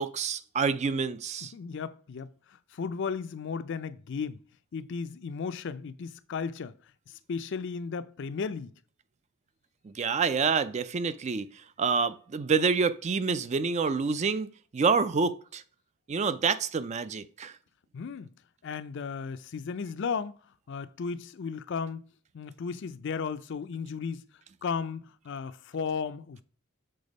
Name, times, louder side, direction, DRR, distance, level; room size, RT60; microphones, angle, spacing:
voice 1, 0.0-1.5 9.8-15.6 16.1-17.5, right 5 dB, 35° right, 0.4 m, -28 dB
voice 2, 1.5-4.4 4.7-6.7 7.1-8.7 17.9-18.3 18.6-20.4 20.7-22.0 22.3-24.2 24.6-26.4, left 5 dB, 60° left, 0.4 m, -35 dB
6.8 x 3.5 x 5.2 m
head